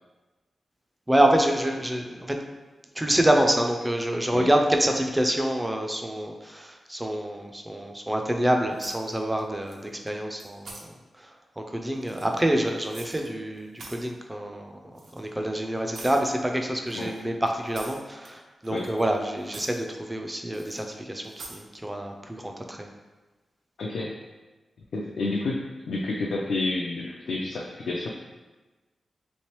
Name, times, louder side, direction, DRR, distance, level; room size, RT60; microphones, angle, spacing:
voice 1, 1.1-2.4 3.0-10.9 11.2-14.7 15.1-22.9, right 1 dB, 10° right, 2 dB, 0.3 m, -26 dB
sound 1, 8.8-9.4 9.7-10.1 10.4-10.8 11.9-13.3 13.6-14.1 15.0-15.2 15.9-16.2 16.9-18.3 18.6-19.2 19.4-19.8 20.5-20.8 21.2-21.6, right 3 dB, 75° right, 0.5 m, -44 dB
voice 2, 23.8-24.1 24.9-25.6 25.9-28.1, left 2 dB, 90° left, -3 dB, 0.3 m, -29 dB
3.4 x 3.1 x 2.9 m, 1.2 s
wide cardioid pair, 145°, 0 cm